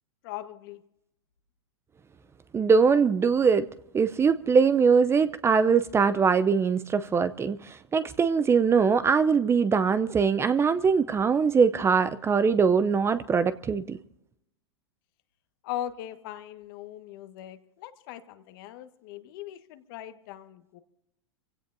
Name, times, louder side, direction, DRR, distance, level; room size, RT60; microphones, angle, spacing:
voice 1, 0.2-0.8 15.6-20.8, left 12 dB, 55° left, 1.5 m, -39 dB
voice 2, 2.5-3.7 3.9-14.0, right 5 dB, 20° right, 0.6 m, -22 dB
27.5 x 16.5 x 2.7 m
hypercardioid pair, 105°, 14 cm